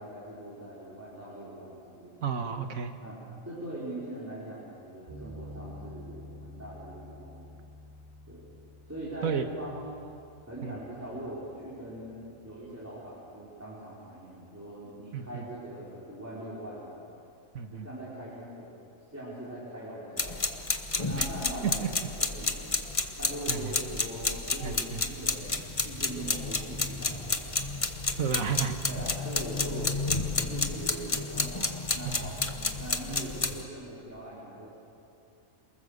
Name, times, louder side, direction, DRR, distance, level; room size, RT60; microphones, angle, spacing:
voice 1, 0.0-2.2 3.0-7.5 8.2-8.5 8.9-10.0 10.4-17.0 17.7-18.7 19.1-20.4 21.0-21.8 22.2-22.6 23.2-27.5 28.9-29.9 30.3-32.5 32.8-34.7, right 1 dB, 10° right, -9 dB, 5.1 m, -41 dB
voice 2, 2.2-2.9 9.2-9.5 10.6-10.8 15.1-15.4 17.5-17.9 21.6-21.9 23.5-23.7 24.6-25.0 28.2-28.8 32.0-32.3, right 7 dB, 75° right, 7 dB, 1.8 m, -32 dB
sound 1, 5.1-13.2, left 1 dB, 45° right, 7.0 m, -50 dB
sound 2, 20.2-33.6, left 3 dB, 25° left, 1.2 m, -31 dB
28.0 x 21.5 x 6.7 m, 2.6 s
omnidirectional pair, 1.4 m